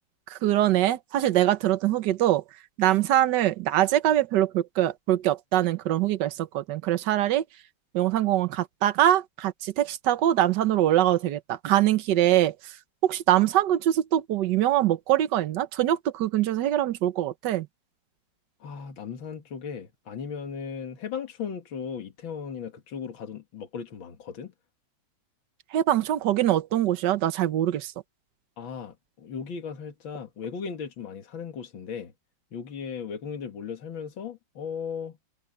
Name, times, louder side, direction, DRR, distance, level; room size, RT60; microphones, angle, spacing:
voice 1, 0.3-2.4 2.8-7.4 7.9-12.5 13.0-17.7 25.7-27.9, right 12 dB, 60° right, 1.4 m, -23 dB
voice 2, 18.6-24.5 28.6-32.1 32.5-35.2, left 6 dB, 70° left, 2.6 m, -36 dB
omnidirectional pair, 2.3 m